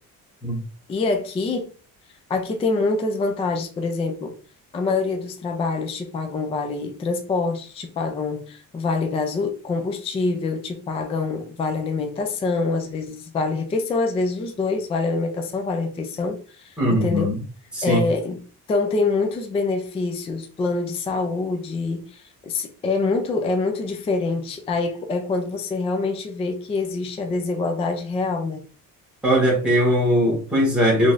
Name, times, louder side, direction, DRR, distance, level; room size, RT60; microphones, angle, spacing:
voice 1, 0.9-1.7 2.3-4.4 4.7-17.3 17.8-18.4 18.7-28.6, left 3 dB, 20° left, 0.3 m, -25 dB
voice 2, 16.8-17.4 17.7-18.0 29.2-31.1, equal, 5° right, 1.7 m, -20 dB
3.8 x 3.2 x 2.4 m
cardioid pair, 170°, 35 cm